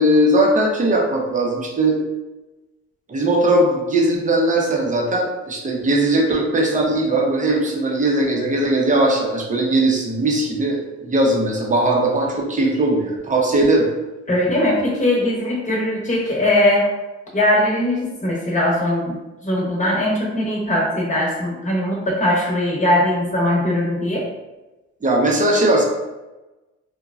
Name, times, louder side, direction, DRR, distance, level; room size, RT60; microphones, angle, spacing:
voice 1, 0.0-2.0 3.1-13.9 25.0-25.8, right 1 dB, 25° right, -1 dB, 0.7 m, -19 dB
voice 2, 14.3-16.9 17.3-19.1 19.4-24.2, left 1 dB, 25° left, -3 dB, 1.0 m, -20 dB
2.9 x 2.2 x 2.4 m, 1.1 s
cardioid pair, 90°, 30 cm